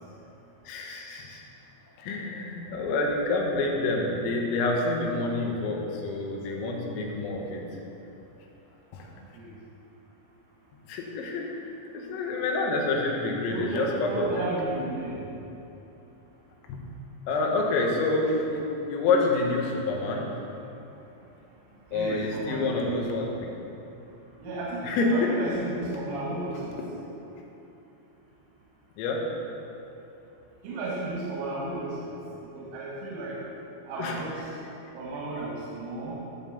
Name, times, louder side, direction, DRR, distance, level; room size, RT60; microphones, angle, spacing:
voice 1, 0.7-1.4 2.0-7.7 8.9-9.1 10.9-14.3 16.7-16.8 17.3-18.6 18.9-20.3 21.9-23.5 24.8-25.3 29.0-29.3 34.0-34.2, left 3 dB, 85° left, 0 dB, 4.0 m, -28 dB
voice 2, 13.5-15.3 21.9-23.3 24.4-26.8 30.6-32.1 32.5-33.4 33.8-34.6 34.9-36.2, right 2 dB, 90° right, -6 dB, 4.7 m, -33 dB
14.0 x 5.7 x 7.1 m, 3.0 s
omnidirectional pair, 5.9 m